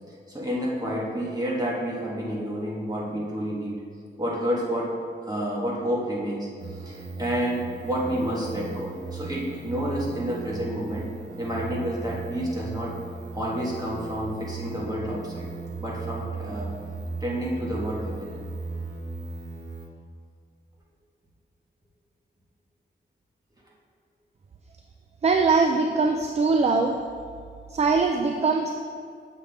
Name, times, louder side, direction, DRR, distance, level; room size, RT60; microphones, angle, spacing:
voice 1, 0.3-3.8 4.2-4.9 5.2-11.1 11.4-13.0 13.3-15.5 15.8-16.7 17.2-18.4, equal, 20° right, -5 dB, 1.5 m, -29 dB
sound 1, 6.6-19.9, right 4 dB, 70° right, 0.9 m, -37 dB
voice 2, 25.2-27.0 27.7-28.7, right 4 dB, 35° right, 3 dB, 0.4 m, -22 dB
7.5 x 5.9 x 3.5 m, 2.3 s
wide cardioid pair, 140°, 19 cm